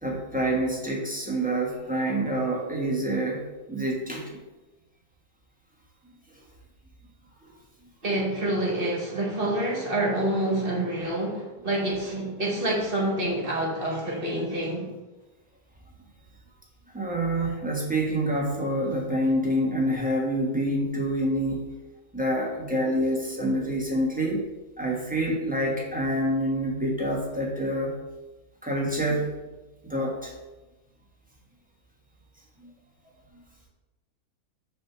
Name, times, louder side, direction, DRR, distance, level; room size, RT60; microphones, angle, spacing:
voice 1, 0.0-4.4 16.9-21.6 22.1-24.4 24.8-27.9 28.6-29.3 29.8-30.3 32.6-32.7, right 1 dB, 5° right, -3 dB, 1.2 m, -27 dB
voice 2, 8.0-14.9, right 1 dB, 35° right, -2 dB, 1.6 m, -27 dB
6.3 x 3.5 x 5.9 m, 1.1 s
omnidirectional pair, 1.6 m